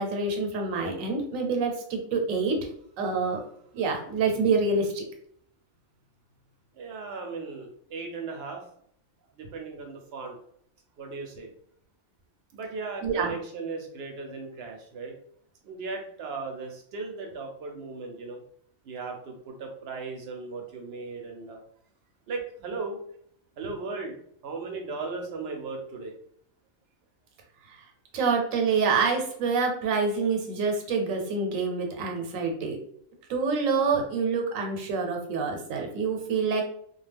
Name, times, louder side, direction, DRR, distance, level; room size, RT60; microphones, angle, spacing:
voice 1, 0.0-2.6 3.0-3.4 3.7-5.0 13.0-13.3 27.7-27.8 28.1-32.8 33.3-36.6, right 4 dB, 90° right, 3 dB, 1.0 m, -26 dB
voice 2, 6.7-8.6 9.4-10.4 11.0-11.5 12.5-15.1 15.6-18.4 18.8-21.6 22.3-23.0 23.6-24.2 24.4-26.1, right 4 dB, 65° right, 2 dB, 0.7 m, -37 dB
2.4 x 2.2 x 3.3 m, 0.65 s
omnidirectional pair, 1.3 m